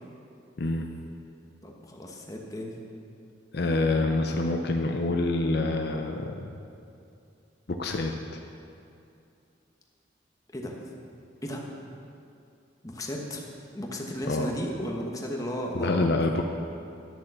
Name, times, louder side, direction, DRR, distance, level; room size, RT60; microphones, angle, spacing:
voice 1, 0.6-0.9 3.5-6.5 7.7-8.4 14.3-14.5 15.7-16.4, left 2 dB, 55° left, 4 dB, 0.6 m, -27 dB
voice 2, 1.6-2.8 10.5-10.7 11.4-11.6 12.8-13.4 13.7-16.1, equal, 20° left, 0 dB, 1.1 m, -34 dB
10.5 x 6.9 x 6.8 m, 2.5 s
head